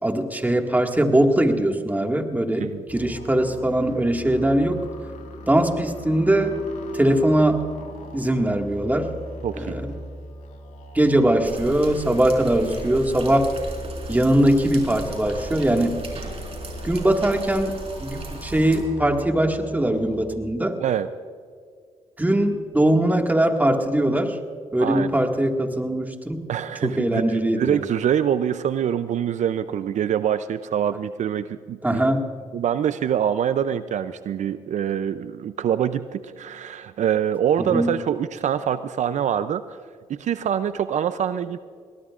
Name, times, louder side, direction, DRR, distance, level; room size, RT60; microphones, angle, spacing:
voice 1, 0.0-4.8 5.5-6.6 6.9-7.6 8.1-9.1 9.6-10.0 10.9-13.5 14.1-16.0 16.8-17.7 18.0-20.8 22.2-24.4 24.7-26.4 26.8-27.8 31.8-32.2 37.6-37.9, right 1 dB, 15° right, 3 dB, 1.9 m, -21 dB
sound 1, 2.9-20.3, left 1 dB, 70° left, 2.3 m, -40 dB
voice 2, 9.4-9.9 20.8-21.1 24.8-25.1 26.5-32.0 32.5-39.8 40.1-41.6, right 9 dB, 70° right, 12 dB, 0.5 m, -25 dB
sound 2, 11.4-18.8, right 2 dB, 50° right, 4.3 m, -37 dB
22.0 x 18.5 x 2.5 m, 2.1 s
cardioid pair, 65°, 13 cm